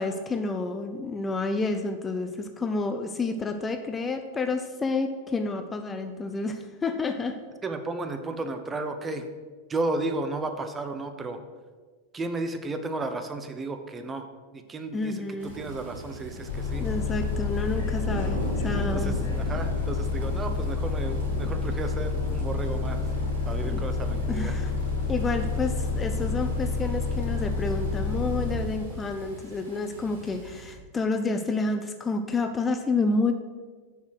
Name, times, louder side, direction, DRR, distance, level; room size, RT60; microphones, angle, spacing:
voice 1, 0.0-7.4 14.9-15.6 16.8-19.1 23.6-23.8 24.3-24.7 25.1-33.3, left 3 dB, 15° left, 7 dB, 0.5 m, -29 dB
voice 2, 7.6-9.3 9.7-11.4 12.1-14.2 14.5-16.8 17.8-17.9 18.9-23.0 23.5-24.5, right 2 dB, 20° right, 7 dB, 0.7 m, -33 dB
sound 1, 15.4-30.7, right 1 dB, 75° right, 2.4 m, -40 dB
Bus, 16.5-28.5, left 4 dB, 75° left, 2.3 m, -29 dB
6.9 x 4.3 x 6.4 m, 1.4 s
hypercardioid pair, 120°, 0 cm